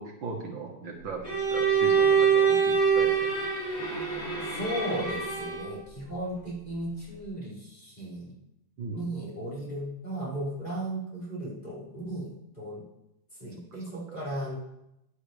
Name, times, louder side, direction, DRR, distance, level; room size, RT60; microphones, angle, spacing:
voice 1, 0.0-3.3 8.8-9.1 14.1-14.2, right 4 dB, 70° right, 0 dB, 2.2 m, -38 dB
Bowed string instrument, 1.2-5.8, right 6 dB, 45° left, 6.3 m, -25 dB
voice 2, 4.4-8.3 8.9-12.8 13.4-14.6, right 1 dB, 20° left, -9 dB, 5.4 m, -35 dB
15.0 x 10.0 x 3.4 m, 0.85 s
omnidirectional pair, 2.3 m